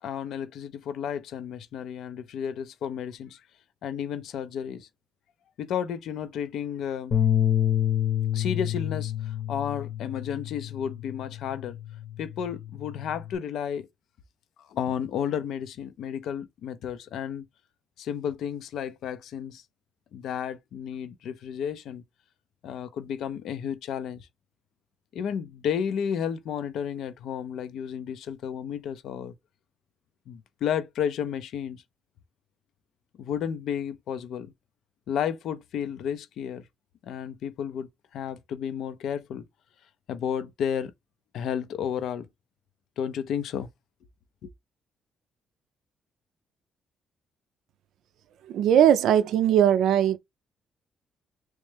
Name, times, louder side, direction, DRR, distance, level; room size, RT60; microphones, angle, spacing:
voice 1, 0.0-3.4 3.8-4.9 5.6-7.2 8.3-11.8 12.2-13.9 14.7-17.4 18.0-19.6 20.1-22.0 22.6-24.3 25.1-29.3 30.3-31.8 33.2-34.5 35.1-36.7 37.0-39.4 40.1-40.9 41.3-42.3 43.0-43.7 44.4-44.5, left 8 dB, 75° left, 0.5 m, -32 dB
sound 1, 7.1-13.4, left 10 dB, 55° left, 0.9 m, -28 dB
voice 2, 48.5-50.2, right 10 dB, 80° right, 0.4 m, -20 dB
3.1 x 3.1 x 3.3 m
cardioid pair, 90°, 0 cm